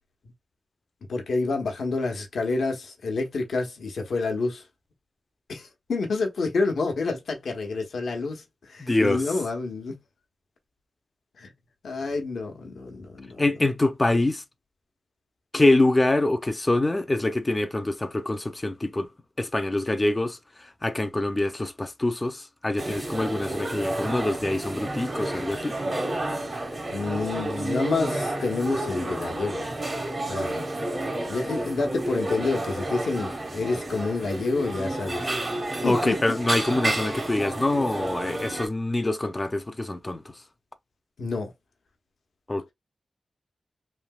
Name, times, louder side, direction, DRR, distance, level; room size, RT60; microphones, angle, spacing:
voice 1, 1.1-4.6 5.5-10.0 11.4-11.5 11.8-13.5 26.9-29.7 30.3-30.6 31.3-35.4 35.8-36.4 41.2-41.5, left 3 dB, 90° left, 0.9 m, -28 dB
voice 2, 8.8-9.2 13.4-14.4 15.5-19.1 19.4-20.4 20.8-25.8 35.8-40.2 42.5-42.7, left 2 dB, 20° left, 0.5 m, -25 dB
sound 1, 22.8-38.7, right 1 dB, 35° right, 0.8 m, -30 dB
3.2 x 2.7 x 2.2 m
wide cardioid pair, 105°, 0 cm